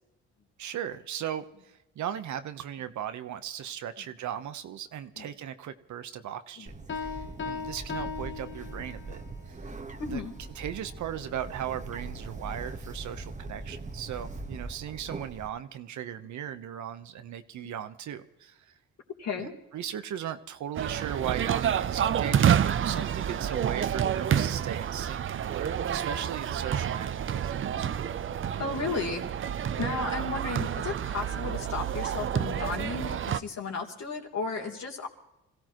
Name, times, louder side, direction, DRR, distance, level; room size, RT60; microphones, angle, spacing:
voice 1, 0.6-9.2 9.5-9.6 10.1-10.2 10.6-18.6 19.4-27.9, right 10 dB, 70° right, 10 dB, 1.1 m, -37 dB
Bird, 6.7-15.5, right 3 dB, 25° right, 1.4 m, -41 dB
Piano, 6.9-9.3, left 6 dB, 40° left, 1.2 m, -37 dB
voice 2, 10.0-10.4 17.6-17.7 19.2-19.5 27.7-27.9 28.6-29.2 29.8-35.1, left 4 dB, 60° left, 1 dB, 3.3 m, -34 dB
sound 1, 20.8-33.4, right 9 dB, 40° right, 0.6 m, -29 dB
26.5 x 16.0 x 3.1 m, 0.96 s
cardioid pair, 90°, 30 cm